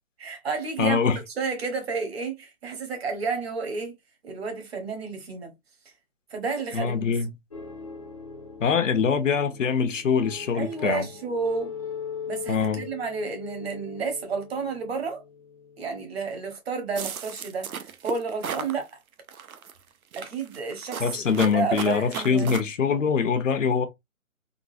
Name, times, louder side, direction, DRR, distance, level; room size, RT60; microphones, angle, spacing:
voice 1, 0.2-1.0 1.4-4.0 4.2-5.5 6.3-7.1 10.5-11.7 12.2-15.2 15.8-19.0 20.2-22.6, right 4 dB, 45° right, 1.1 m, -31 dB
voice 2, 0.8-1.2 6.7-7.3 8.6-11.0 12.5-12.9 21.0-23.8, left 6 dB, 65° left, 0.8 m, -23 dB
sound 1, 7.5-16.3, left 6 dB, 25° left, 0.5 m, -40 dB
sound 2, 17.0-18.7 19.3-19.7 20.1-22.6, right 7 dB, 85° right, 0.7 m, -35 dB
3.7 x 2.3 x 2.6 m
hypercardioid pair, 160°, 41 cm